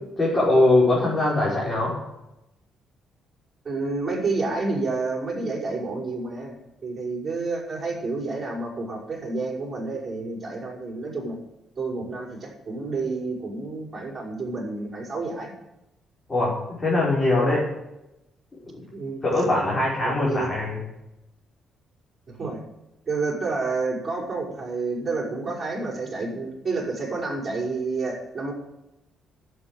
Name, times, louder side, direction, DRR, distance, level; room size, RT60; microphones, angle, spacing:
voice 1, 0.2-1.9 16.3-17.6 19.2-20.8, left 2 dB, 25° left, -7 dB, 5.5 m, -21 dB
voice 2, 3.6-6.6 6.8-11.4 11.8-15.5 18.9-19.2 20.0-20.5 22.3-22.6 23.1-28.5, right 3 dB, 30° right, -1 dB, 5.6 m, -29 dB
11.0 x 8.2 x 9.2 m, 0.92 s
cardioid pair, 90°, 0 cm